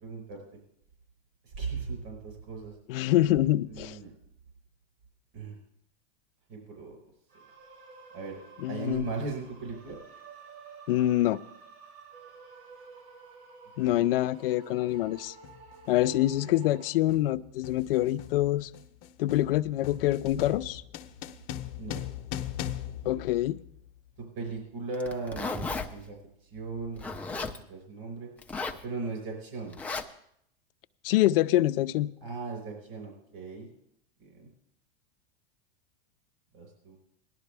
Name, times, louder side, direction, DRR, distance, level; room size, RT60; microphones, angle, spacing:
voice 1, 0.0-0.4 1.4-2.7 3.6-4.1 5.3-5.6 6.5-7.0 8.1-8.4 8.7-10.0 13.8-14.1 16.4-16.7 21.8-22.0 24.2-26.2 26.4-27.4 27.7-28.3 28.8-29.8 32.2-33.7 34.2-34.5 36.5-37.0, right 3 dB, 50° right, 5.0 m, -38 dB
voice 2, 2.9-4.0 8.6-9.1 10.9-11.4 13.8-15.3 15.9-18.7 19.2-20.8 23.1-23.6 31.0-32.1, left 15 dB, 75° left, 0.6 m, -25 dB
sound 1, 7.3-16.9, right 5 dB, 80° right, 5.8 m, -51 dB
sound 2, 13.8-14.0 14.9-15.2 15.4-24.0, left 11 dB, 50° left, 0.9 m, -40 dB
Zipper (clothing), 24.9-25.9 27.0-27.6 28.4-28.8 29.7-30.0, left 3 dB, 5° left, 0.6 m, -34 dB
18.0 x 12.0 x 3.4 m
supercardioid pair, 135°, 29 cm